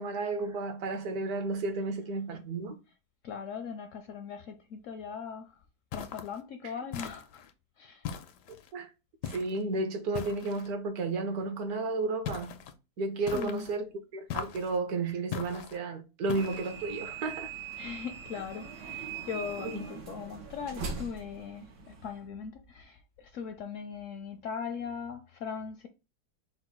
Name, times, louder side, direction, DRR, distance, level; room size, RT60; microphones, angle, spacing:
voice 1, 0.0-2.7 6.6-6.7 8.7-8.9 9.2-12.6 13.0-17.5 19.6-19.8, right 3 dB, 65° right, 1.3 m, -33 dB
voice 2, 3.2-5.5 5.9-7.4 7.8-8.0 13.3-13.7 17.8-25.9, left 6 dB, 70° left, 0.7 m, -40 dB
sound 1, 5.9-6.4 6.9-7.5 8.0-8.7 9.2-9.6 10.1-10.7 12.3-12.7 13.3-13.8 14.3-14.8 15.3-15.8 16.3-16.8, left 7 dB, 90° left, 1.2 m, -39 dB
sound 2, 16.4-22.2, right 6 dB, 85° right, 1.6 m, -41 dB
4.5 x 2.2 x 4.4 m
omnidirectional pair, 1.8 m